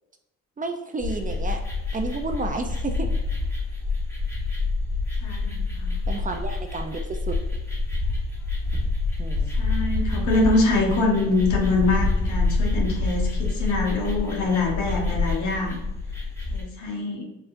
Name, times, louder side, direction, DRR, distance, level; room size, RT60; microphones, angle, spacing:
voice 1, 0.6-1.6 1.9-3.1 6.1-7.4 9.2-9.5, right 3 dB, 25° right, 4 dB, 0.5 m, -31 dB
sound 1, 1.0-16.6, left 3 dB, 10° left, 1.3 m, -27 dB
voice 2, 5.2-6.0 9.5-15.8 16.5-17.3, left 2 dB, 75° left, -1 dB, 1.3 m, -24 dB
4.9 x 3.7 x 2.5 m, 0.92 s
cardioid pair, 90°, 30 cm